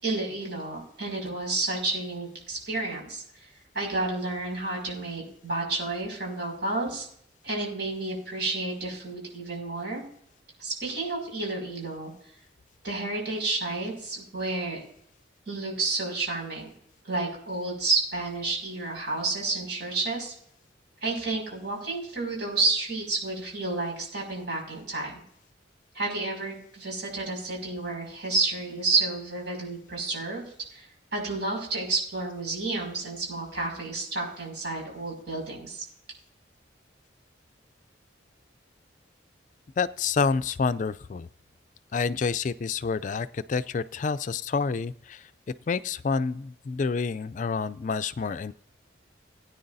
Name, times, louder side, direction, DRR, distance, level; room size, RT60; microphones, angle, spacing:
voice 1, 0.0-3.5 3.7-7.1 7.4-10.0 10.6-12.1 12.8-14.8 15.5-16.7 17.1-20.3 21.0-25.2 25.9-30.4 30.7-30.9 31.1-35.8, right 3 dB, 65° right, 0 dB, 5.8 m, -30 dB
voice 2, 39.8-41.3 41.9-45.3 45.7-48.5, left 5 dB, 40° left, 14 dB, 0.3 m, -28 dB
19.5 x 9.4 x 2.7 m, 0.66 s
head